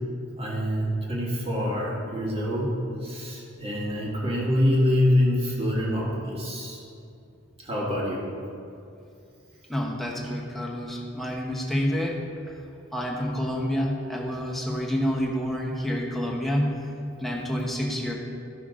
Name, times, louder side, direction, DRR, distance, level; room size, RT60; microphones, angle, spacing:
voice 1, 0.4-2.7 3.0-6.8 7.6-8.2, left 1 dB, 30° right, -4 dB, 1.7 m, -25 dB
voice 2, 9.7-12.2 12.9-16.9 17.2-18.1, equal, ahead, -2 dB, 1.1 m, -28 dB
13.0 x 5.8 x 3.7 m, 2.6 s
head